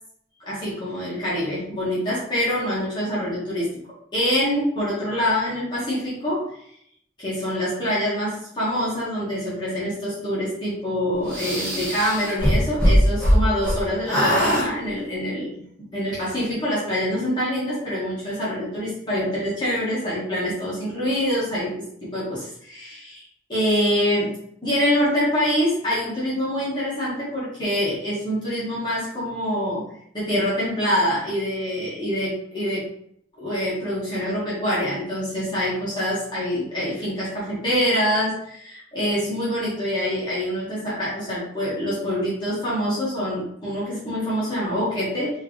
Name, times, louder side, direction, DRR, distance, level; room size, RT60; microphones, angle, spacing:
voice 1, 0.4-6.6 7.2-15.6 15.9-21.7 22.1-23.2 23.5-24.4 24.6-29.8 30.1-32.8 33.4-45.3, equal, 25° left, -9 dB, 1.6 m, -25 dB
sound 1, 11.3-13.8 14.1-14.7, equal, 5° left, 1.5 m, -20 dB
4.8 x 3.2 x 3.3 m, 0.69 s
head